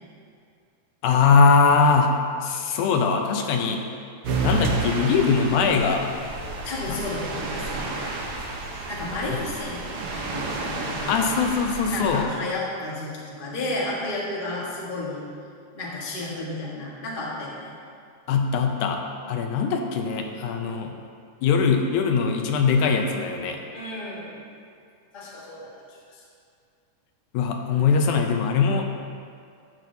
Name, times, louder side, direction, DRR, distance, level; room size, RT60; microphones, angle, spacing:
voice 1, 1.0-2.1 2.4-3.8 4.4-6.1 6.9-7.1 9.2-9.4 11.1-12.3 18.3-19.0 19.3-20.9 21.4-23.6 27.3-28.8, left 5 dB, 80° left, 3 dB, 2.1 m, -21 dB
sound 1, 4.2-12.2, right 3 dB, 65° right, 1.5 m, -30 dB
voice 2, 6.6-7.9 8.9-9.8 10.2-11.2 11.9-15.2 15.7-17.7 23.7-24.3 25.1-26.2, left 2 dB, 35° left, -5 dB, 0.8 m, -32 dB
12.0 x 8.4 x 2.7 m, 2.3 s
omnidirectional pair, 3.5 m